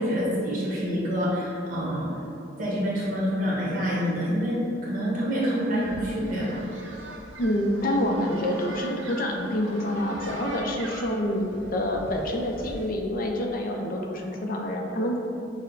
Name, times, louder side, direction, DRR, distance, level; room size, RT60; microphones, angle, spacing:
voice 1, 0.0-2.1 2.6-6.7, equal, 45° right, -6 dB, 1.2 m, -27 dB
sound 1, 5.5-12.9, right 1 dB, 85° right, 0.7 m, -41 dB
voice 2, 7.4-15.2, left 1 dB, 50° left, 1 dB, 0.5 m, -27 dB
6.3 x 2.1 x 3.8 m, 2.9 s
head